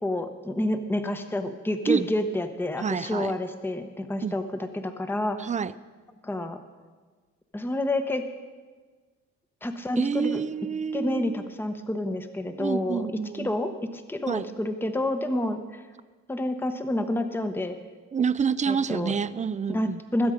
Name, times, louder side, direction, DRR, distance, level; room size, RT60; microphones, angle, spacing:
voice 1, 0.0-4.4 4.7-5.4 6.2-6.6 7.5-8.2 9.6-10.4 10.9-13.1 13.3-15.8 16.3-17.8 18.7-19.2 19.7-20.3, left 1 dB, 5° left, 8 dB, 0.9 m, -29 dB
voice 2, 2.8-3.3 4.2-4.3 5.4-5.7 10.0-11.5 12.6-13.5 14.3-14.6 18.1-20.0, right 6 dB, 25° right, 16 dB, 0.4 m, -28 dB
20.5 x 8.1 x 5.0 m, 1.4 s
cardioid pair, 90°, 30 cm